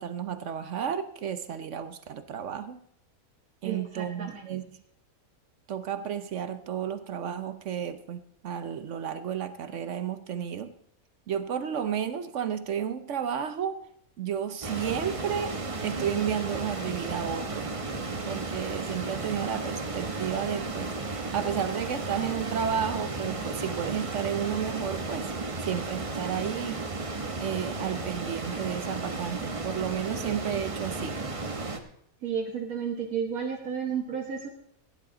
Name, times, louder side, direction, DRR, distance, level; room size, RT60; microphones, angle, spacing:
voice 1, 0.0-2.8 3.6-4.7 5.7-10.7 11.3-13.8 14.2-17.7 18.2-25.3 25.6-26.8 27.4-31.2, right 8 dB, 60° right, 1.0 m, -32 dB
voice 2, 3.6-4.6 32.2-34.5, right 7 dB, 90° right, 1.9 m, -32 dB
sound 1, 14.6-31.8, right 3 dB, 25° right, 1.0 m, -34 dB
16.0 x 10.5 x 3.9 m
omnidirectional pair, 1.5 m